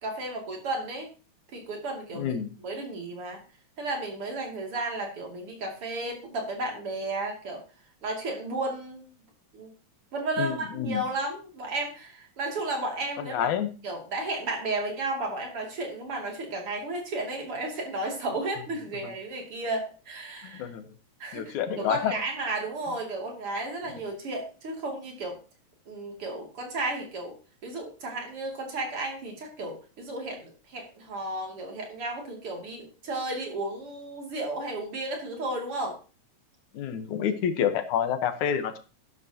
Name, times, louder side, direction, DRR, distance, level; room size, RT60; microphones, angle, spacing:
voice 1, 0.0-1.1 1.5-2.4 2.6-3.4 3.8-7.6 8.0-9.1 9.5-9.7 10.1-13.5 13.8-20.7 21.2-25.4 25.9-27.4 27.6-36.0, right 2 dB, 50° right, 1 dB, 3.5 m, -33 dB
voice 2, 2.1-2.5 10.4-11.0 13.3-13.7 19.0-19.1 20.4-20.9 21.3-22.1 23.9-24.0 36.7-38.8, left 8 dB, 85° left, 9 dB, 2.6 m, -28 dB
12.0 x 12.0 x 2.9 m, 0.32 s
omnidirectional pair, 3.3 m